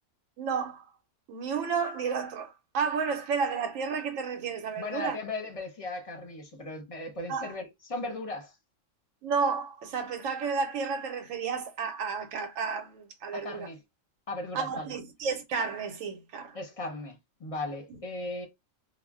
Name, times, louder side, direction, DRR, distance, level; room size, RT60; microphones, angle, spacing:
voice 1, 0.4-0.9 1.3-5.2 7.3-7.5 9.2-13.7 14.5-16.6, right 5 dB, 85° right, 1.0 m, -32 dB
voice 2, 4.8-8.5 13.3-13.8 14.3-14.9 16.5-18.5, left 2 dB, 35° left, 0.6 m, -37 dB
2.4 x 2.0 x 3.5 m
omnidirectional pair, 1.3 m